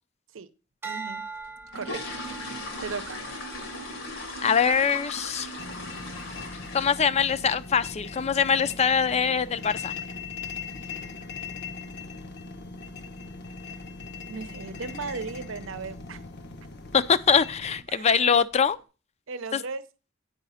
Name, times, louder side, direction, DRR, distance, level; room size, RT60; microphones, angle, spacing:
sound 1, 0.8-5.3 5.8-6.2, right 4 dB, 10° right, 0.7 m, -42 dB
voice 1, 0.8-1.2 1.7-2.0 2.4-3.2 10.8-11.0 14.3-16.2 17.9-18.1 19.3-19.8, right 4 dB, 90° right, 0.7 m, -36 dB
sound 2, 1.4-7.3 7.5-7.8 8.2-8.3 8.6-8.8 9.2-9.4 9.6-9.7 10.3-10.4 10.7-10.8 11.3-11.7 11.9-12.0 12.4-12.6 13.0-13.1 13.5-13.6 14.2-14.5 14.8-15.2 15.5-15.6 16.1-16.2 16.9-17.1 17.5-17.9 18.4-18.5, left 2 dB, 85° left, 2.1 m, -38 dB
voice 2, 4.4-5.5 6.7-9.9 16.9-18.8 19.5-19.6, left 6 dB, 35° left, 0.4 m, -23 dB
sound 3, 5.6-17.8, left 4 dB, 60° left, 0.8 m, -40 dB
9.4 x 4.9 x 5.5 m
head